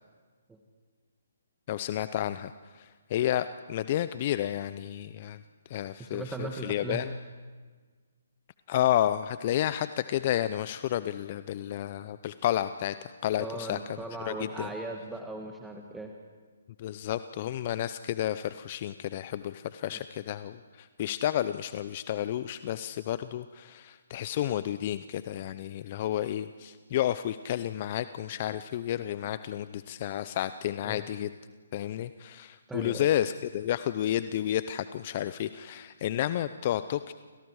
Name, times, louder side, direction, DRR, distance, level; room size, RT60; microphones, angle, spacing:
voice 1, 1.7-5.4 5.7-7.1 8.7-14.0 14.3-14.7 16.8-31.4 31.7-37.1, left 12 dB, 40° left, 13 dB, 0.6 m, -31 dB
voice 2, 6.0-7.1 13.4-16.1 19.9-20.0 30.8-31.0 32.7-33.1, right 2 dB, 5° right, 2 dB, 1.5 m, -38 dB
29.5 x 25.5 x 4.9 m, 1.5 s
hypercardioid pair, 145°, 0 cm